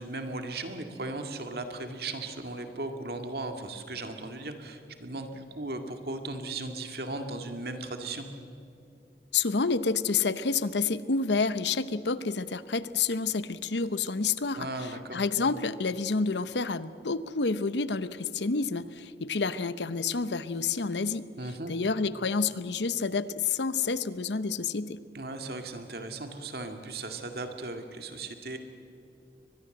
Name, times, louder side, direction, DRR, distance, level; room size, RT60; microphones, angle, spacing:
voice 1, 0.0-8.3 14.6-15.2 21.4-21.7 25.1-28.6, right 2 dB, 60° right, 5 dB, 2.1 m, -37 dB
voice 2, 9.3-21.3 21.7-25.0, left 4 dB, 80° left, 14 dB, 0.8 m, -29 dB
23.5 x 20.5 x 7.8 m, 2.7 s
head